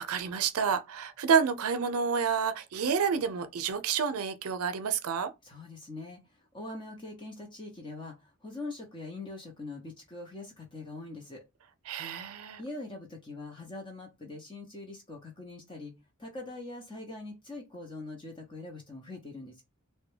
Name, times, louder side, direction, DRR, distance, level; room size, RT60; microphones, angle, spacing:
voice 1, 0.0-5.3 11.9-12.6, right 6 dB, 80° right, 0.5 m, -29 dB
voice 2, 5.4-6.2 6.5-11.4 12.6-15.9 16.2-19.6, left 2 dB, 20° left, 0.7 m, -43 dB
3.5 x 2.2 x 3.2 m
head